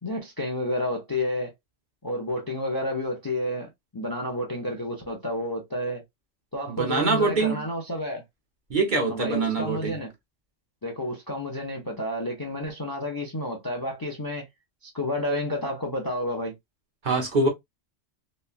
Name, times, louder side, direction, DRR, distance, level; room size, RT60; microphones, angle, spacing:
voice 1, 0.0-1.5 2.0-6.0 6.5-8.2 9.1-10.1 10.8-14.5 14.8-16.5, left 1 dB, 25° left, 0.5 m, -30 dB
voice 2, 6.7-7.6 8.7-10.0 17.0-17.5, right 3 dB, 45° right, 0.9 m, -24 dB
3.0 x 2.3 x 2.3 m
omnidirectional pair, 1.2 m